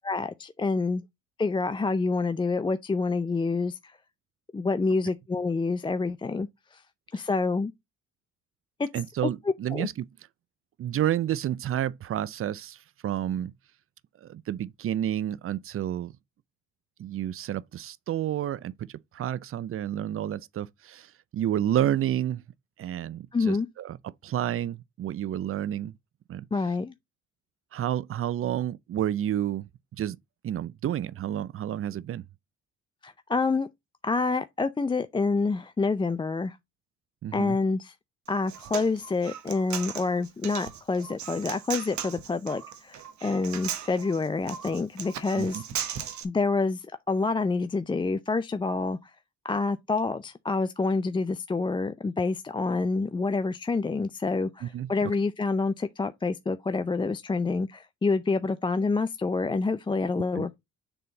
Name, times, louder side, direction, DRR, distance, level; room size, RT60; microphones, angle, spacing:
voice 1, 0.0-1.0 1.4-4.0 4.5-6.8 7.1-7.7 8.8-8.9 9.7-9.9 23.3-23.7 26.5-26.9 33.0-33.7 34.0-36.6 37.3-37.9 38.3-45.6 46.2-49.1 49.4-60.5, left 3 dB, 15° left, 0.4 m, -27 dB
voice 2, 8.9-10.0 10.8-13.5 14.2-16.1 17.0-22.4 22.8-24.0 24.2-26.0 26.3-26.5 27.7-29.7 30.0-30.2 30.4-32.2 37.2-37.6 45.4-45.6 54.6-54.9 60.4-60.5, right 11 dB, 50° right, 0.5 m, -30 dB
Human voice, 38.3-46.2, right 9 dB, 70° right, 1.1 m, -37 dB
6.8 x 3.7 x 3.9 m
cardioid pair, 90°, 30 cm